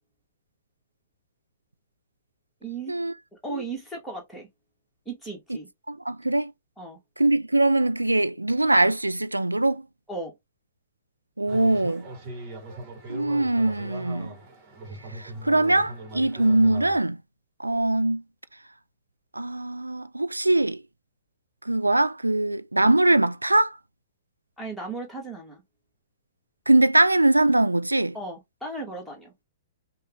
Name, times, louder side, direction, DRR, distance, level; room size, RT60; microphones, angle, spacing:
voice 1, 2.6-2.9 3.3-4.5 5.1-5.7 6.8-7.0 10.1-10.3 24.6-25.6 28.1-29.4, right 3 dB, ahead, 1.9 m, -36 dB
voice 2, 5.9-6.5 7.2-9.8 11.4-12.1 13.1-14.3 15.1-17.2 17.6-18.2 19.3-20.8 21.7-23.8 26.7-28.2, right 2 dB, 85° right, 0.3 m, -22 dB
sound 1, 11.5-17.0, right 2 dB, 35° right, 1.5 m, -40 dB
5.4 x 2.4 x 3.5 m
figure-of-eight pair, 115°, 0 cm